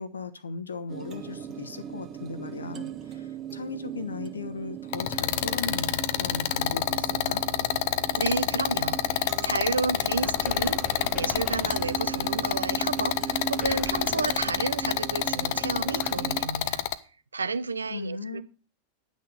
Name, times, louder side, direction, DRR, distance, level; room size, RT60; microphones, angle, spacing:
voice 1, 0.0-7.4 17.9-18.4, left 3 dB, 75° left, 1.1 m, -37 dB
sound 1, 0.9-16.5, right 8 dB, 30° right, 1.1 m, -38 dB
sound 2, 4.9-16.9, left 13 dB, 50° left, 0.7 m, -28 dB
voice 2, 8.2-16.8 17.3-18.4, right 4 dB, 75° right, 0.5 m, -31 dB
sound 3, 10.1-16.1, left 2 dB, 15° left, 1.4 m, -43 dB
10.0 x 6.4 x 6.9 m
figure-of-eight pair, 90°, 0 cm